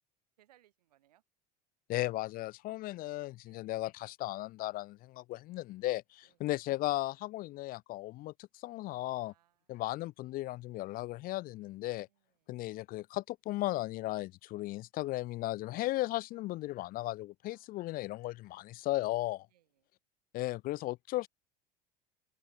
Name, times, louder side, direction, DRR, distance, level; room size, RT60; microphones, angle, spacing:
voice 1, 0.4-1.2 3.5-3.8 6.2-6.4 9.2-9.8 12.0-12.7 16.3-16.6 17.4-18.5 19.5-19.9, right 13 dB, 75° right, 7.0 m, -71 dB
voice 2, 1.9-9.3 9.7-12.1 12.5-19.5 20.3-21.3, left 17 dB, 45° left, 0.6 m, -36 dB
open air
hypercardioid pair, 75°, 20 cm